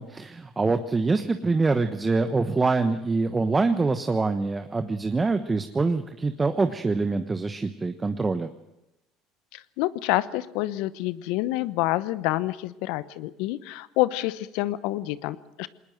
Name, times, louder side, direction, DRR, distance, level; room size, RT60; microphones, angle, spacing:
voice 1, 0.0-8.5, right 3 dB, 20° right, 8 dB, 1.2 m, -25 dB
voice 2, 9.5-15.7, left 17 dB, 75° left, 17 dB, 0.9 m, -28 dB
20.5 x 19.5 x 7.9 m, 0.93 s
supercardioid pair, 80°, 0 cm